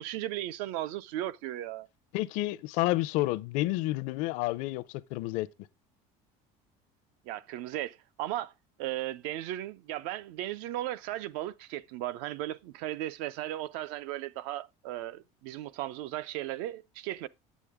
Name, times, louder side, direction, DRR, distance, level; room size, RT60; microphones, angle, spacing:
voice 1, 0.0-1.9 7.3-8.5 8.8-17.3, right 14 dB, 70° right, 0.6 m, -36 dB
voice 2, 2.1-5.5, left 18 dB, 60° left, 0.6 m, -30 dB
8.4 x 8.3 x 3.5 m
cardioid pair, 175°, 15 cm